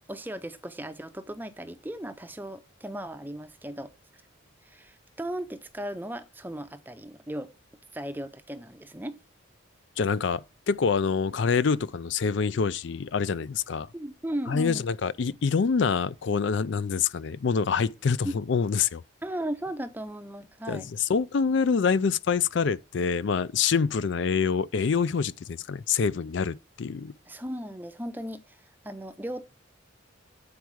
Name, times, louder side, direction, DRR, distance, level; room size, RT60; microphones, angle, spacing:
voice 1, 0.1-3.9 4.6-7.5 7.9-9.2 13.9-14.9 18.2-18.3 19.2-20.9 27.3-29.4, right 1 dB, 10° right, 0.6 m, -36 dB
voice 2, 10.0-13.9 14.5-19.0 20.7-27.1, left 5 dB, 60° left, 0.4 m, -26 dB
8.6 x 4.6 x 6.2 m
head